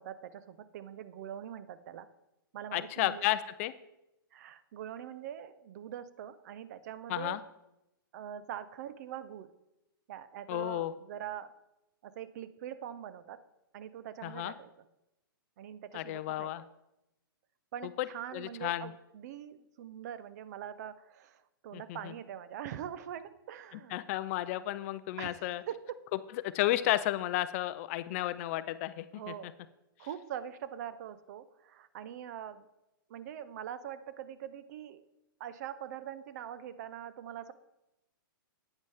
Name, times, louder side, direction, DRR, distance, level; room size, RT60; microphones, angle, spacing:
voice 1, 0.0-2.1 2.5-3.2 4.3-7.4 8.1-9.5 10.1-11.5 12.0-13.4 13.7-14.7 15.6-16.7 17.7-24.0 25.2-26.0 29.1-29.5 30.0-32.7 33.1-35.0 35.4-37.5, right 10 dB, 50° right, 14 dB, 0.5 m, -43 dB
voice 2, 2.7-3.7 7.1-7.4 10.5-10.9 14.2-14.5 15.9-16.6 18.0-18.1 18.3-18.9 21.7-22.1 23.9-25.6 26.5-29.3, left 15 dB, 40° left, 14 dB, 0.4 m, -32 dB
9.1 x 9.0 x 3.4 m, 0.92 s
hypercardioid pair, 125°, 12 cm